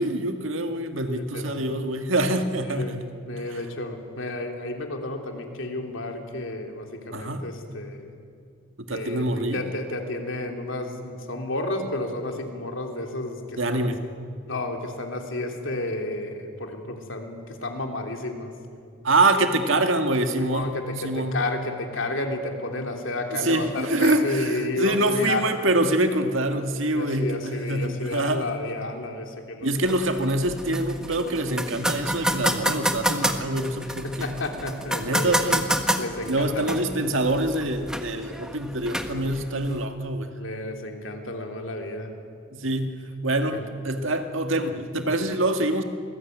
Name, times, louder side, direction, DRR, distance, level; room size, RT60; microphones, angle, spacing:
voice 1, 0.0-3.1 7.1-7.5 8.9-9.6 13.6-14.0 19.0-20.8 21.0-21.4 23.3-28.5 29.6-34.3 35.0-35.7 36.3-40.3 42.5-45.8, right 1 dB, 70° right, 6 dB, 2.0 m, -25 dB
voice 2, 1.2-1.6 2.6-8.1 8.9-13.9 14.5-18.5 20.3-25.5 26.9-29.7 33.9-35.3 36.0-36.8 39.1-39.3 40.4-42.1 43.5-43.6, left 2 dB, 65° left, 3 dB, 3.4 m, -32 dB
sound 1, 29.8-39.9, right 1 dB, 5° right, 1.4 m, -29 dB
27.0 x 20.0 x 9.4 m, 2.3 s
head